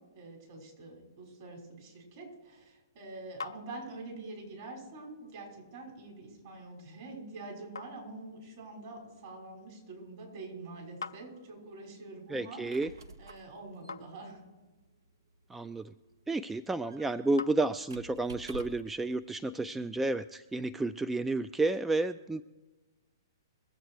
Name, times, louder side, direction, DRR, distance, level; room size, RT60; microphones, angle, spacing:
voice 1, 0.0-12.6 13.2-14.4, right 2 dB, 50° right, -2 dB, 5.8 m, -46 dB
sound 1, 2.5-18.2, left 4 dB, 80° left, 0.6 m, -52 dB
voice 2, 12.3-12.9 15.5-15.9 16.3-22.4, right 2 dB, 5° right, 12 dB, 0.3 m, -31 dB
Squeak, 12.4-19.0, right 3 dB, 80° right, 1.0 m, -52 dB
21.5 x 7.9 x 4.8 m, 1.2 s
hypercardioid pair, 120°, 2 cm